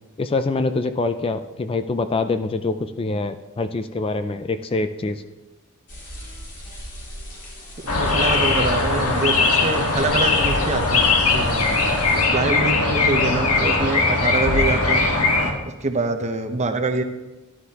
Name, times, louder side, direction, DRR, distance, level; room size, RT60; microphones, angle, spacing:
voice 1, 0.2-5.2, left 3 dB, 25° left, 9 dB, 0.4 m, -25 dB
sound 1, 5.9-12.3, equal, 55° left, 3.9 m, -38 dB
sound 2, 7.9-15.5, left 3 dB, 90° left, 1.7 m, -20 dB
voice 2, 7.9-11.0 11.3-11.6 12.3-15.1 15.6-17.0, right 3 dB, 30° right, 6 dB, 0.8 m, -25 dB
13.0 x 11.0 x 2.9 m, 1.1 s
head